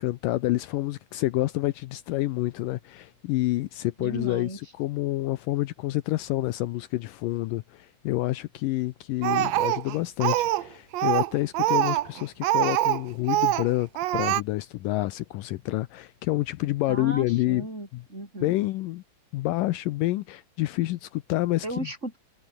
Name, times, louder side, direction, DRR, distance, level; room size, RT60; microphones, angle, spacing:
voice 1, 0.0-17.7 17.9-18.0 18.4-19.0 19.3-21.8, left 17 dB, 80° left, 2.2 m, -28 dB
voice 2, 4.0-4.6 16.9-18.5 21.6-22.2, right 1 dB, 20° right, 5.9 m, -35 dB
Speech, 9.2-10.7 10.9-13.0 13.3-13.7 14.0-14.4, right 15 dB, 80° right, 1.5 m, -24 dB
omnidirectional pair, 4.2 m